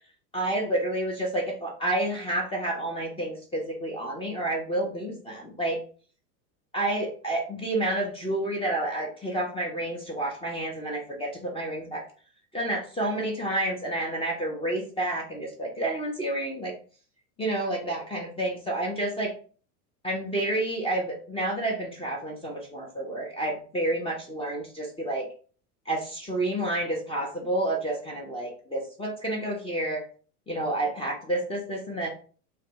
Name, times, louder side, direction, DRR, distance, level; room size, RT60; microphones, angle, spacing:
voice 1, 0.3-5.8 6.7-12.0 12.5-16.7 17.4-19.3 20.0-25.3 25.9-30.0 30.5-32.1, right 1 dB, 10° left, -2 dB, 0.7 m, -29 dB
3.2 x 2.3 x 2.9 m, 0.40 s
hypercardioid pair, 100°, 46 cm